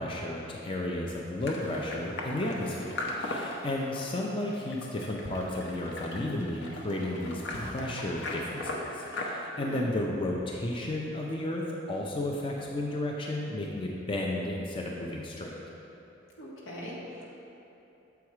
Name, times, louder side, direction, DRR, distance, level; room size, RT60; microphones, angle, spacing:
voice 1, 0.0-15.6, left 1 dB, 25° left, -1 dB, 0.5 m, -33 dB
sound 1, 1.4-9.3, left 2 dB, 65° left, 0.8 m, -39 dB
voice 2, 16.4-17.3, equal, 90° left, -5 dB, 1.5 m, -41 dB
7.1 x 4.6 x 4.7 m, 2.9 s
head